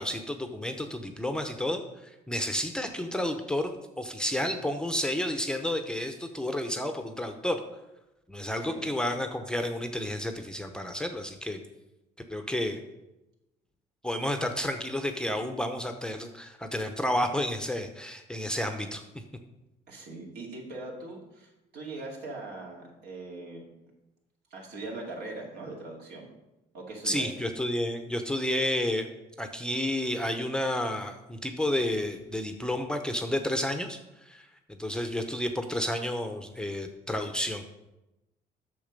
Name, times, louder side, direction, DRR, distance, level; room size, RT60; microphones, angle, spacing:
voice 1, 0.0-7.6 8.3-11.6 12.3-12.8 14.0-19.0 27.0-29.1 29.4-37.6, left 1 dB, 5° left, 6 dB, 0.7 m, -31 dB
voice 2, 19.9-23.9 24.5-26.3 26.7-27.3, right 2 dB, 70° right, -1 dB, 2.6 m, -41 dB
8.6 x 6.6 x 5.2 m, 0.96 s
cardioid pair, 110°, 17 cm